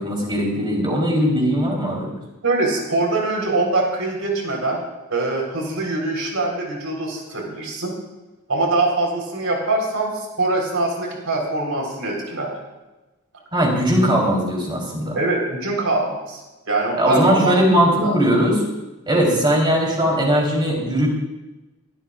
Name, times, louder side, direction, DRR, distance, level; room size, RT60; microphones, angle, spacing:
voice 1, 0.0-2.1 13.5-15.2 16.9-18.6 19.1-21.1, equal, 20° right, -1 dB, 3.5 m, -19 dB
voice 2, 2.4-4.8 5.1-7.9 8.5-10.1 10.4-12.5 15.1-18.1, right 2 dB, 85° right, 0 dB, 3.9 m, -23 dB
21.5 x 12.5 x 2.4 m, 1.1 s
head